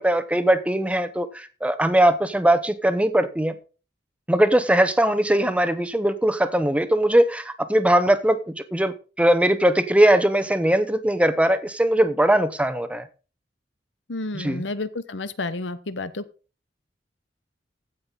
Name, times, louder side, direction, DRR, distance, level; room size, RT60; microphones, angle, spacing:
voice 1, 0.0-3.6 4.3-13.1 14.3-14.6, right 1 dB, 5° right, 0.8 m, -20 dB
voice 2, 14.1-16.2, left 2 dB, 85° left, 1.0 m, -30 dB
15.5 x 5.7 x 3.9 m
head